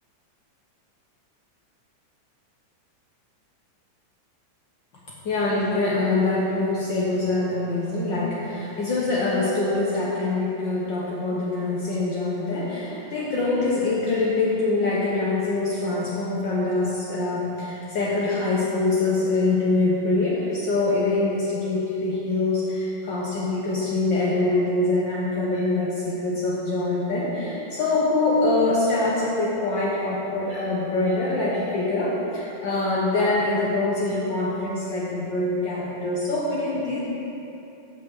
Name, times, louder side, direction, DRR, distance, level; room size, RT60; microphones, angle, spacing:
voice 1, 5.2-37.0, left 2 dB, 65° left, -6 dB, 1.1 m, -24 dB
9.4 x 6.3 x 7.5 m, 3.0 s
omnidirectional pair, 3.7 m